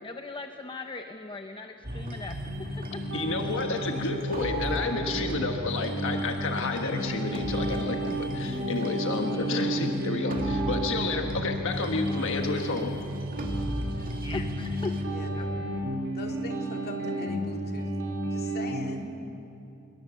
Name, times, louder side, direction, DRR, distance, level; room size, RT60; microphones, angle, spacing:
voice 1, 0.0-3.0 3.4-3.6 14.2-15.5, left 3 dB, 20° left, 5 dB, 0.8 m, -39 dB
sound 1, 1.8-15.0, right 1 dB, 40° right, 2.4 m, -35 dB
sound 2, 2.4-19.0, right 1 dB, 60° right, 4.5 m, -33 dB
voice 2, 3.1-12.9, left 3 dB, 60° left, 3 dB, 1.4 m, -31 dB
voice 3, 15.0-15.5 16.1-17.9 18.3-19.3, left 2 dB, 45° left, 2 dB, 2.7 m, -41 dB
26.0 x 21.5 x 7.2 m, 2.9 s
head